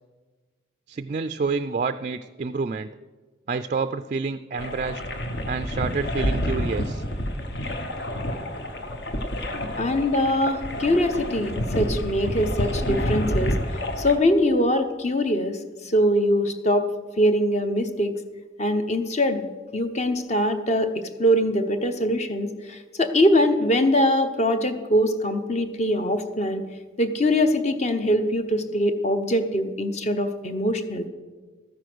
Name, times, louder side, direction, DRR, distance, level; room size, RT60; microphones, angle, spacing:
voice 1, 0.9-2.9 3.5-5.0 5.5-7.0, right 4 dB, 40° right, 11 dB, 0.3 m, -28 dB
sound 1, 4.6-14.2, equal, 55° left, 1.2 m, -28 dB
voice 2, 9.8-13.6 14.0-15.6 15.8-16.9 17.2-18.2 18.6-19.4 19.7-26.7 27.0-31.0, equal, 35° left, 8 dB, 0.9 m, -22 dB
13.5 x 9.7 x 6.1 m, 1.4 s
head